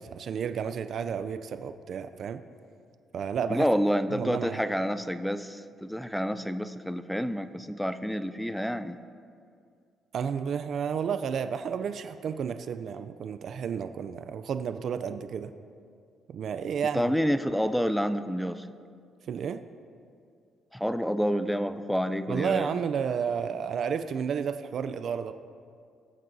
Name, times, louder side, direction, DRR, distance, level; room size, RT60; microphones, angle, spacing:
voice 1, 0.0-2.4 3.1-3.7 4.1-4.6 10.1-15.5 16.3-17.1 19.3-19.6 22.3-25.3, right 7 dB, 65° right, 10 dB, 0.4 m, -31 dB
voice 2, 3.5-9.0 16.9-18.6 20.7-22.7, equal, ahead, 11 dB, 0.4 m, -28 dB
19.5 x 7.5 x 2.7 m, 2.3 s
cardioid pair, 90°, 0 cm